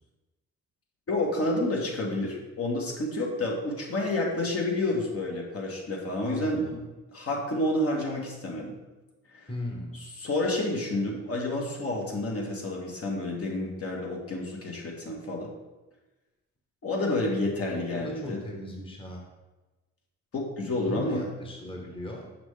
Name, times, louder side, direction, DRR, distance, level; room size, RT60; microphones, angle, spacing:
voice 1, 1.1-6.8 7.1-8.8 9.3-9.5 10.2-15.5 16.8-18.4 20.3-21.3, left 2 dB, 50° left, -1 dB, 1.4 m, -29 dB
voice 2, 6.2-6.8 9.5-10.0 17.9-19.2 20.8-22.2, left 1 dB, 15° left, 0 dB, 1.1 m, -38 dB
6.0 x 5.5 x 3.3 m, 1.1 s
cardioid pair, 90°, 30 cm